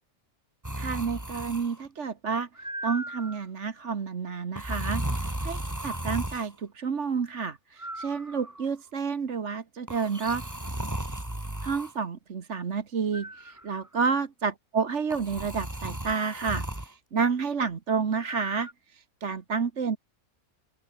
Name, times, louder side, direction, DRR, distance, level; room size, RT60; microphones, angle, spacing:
sound 1, 0.6-1.9 2.6-3.5 4.6-6.5 7.8-8.7 9.9-11.9 13.1-13.9 15.1-16.9 18.2-18.7, right 1 dB, 10° right, 2.6 m, -35 dB
voice 1, 0.8-10.4 11.6-20.0, right 5 dB, 55° right, 1.7 m, -30 dB
open air
omnidirectional pair, 1.5 m